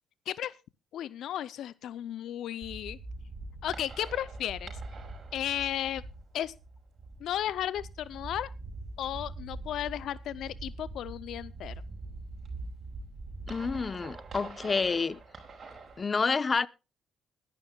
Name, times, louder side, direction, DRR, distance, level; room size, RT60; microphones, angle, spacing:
voice 1, 0.9-3.0 3.6-4.7 5.3-6.0 6.3-6.5 7.2-8.5 9.0-11.7, left 11 dB, 75° left, 0.5 m, -34 dB
sound 1, 2.6-16.0, right 2 dB, 45° right, 5.6 m, -43 dB
voice 2, 13.5-15.2 16.0-16.7, left 4 dB, 35° left, 0.8 m, -29 dB
22.0 x 11.0 x 2.3 m
cardioid pair, 90°, 0 cm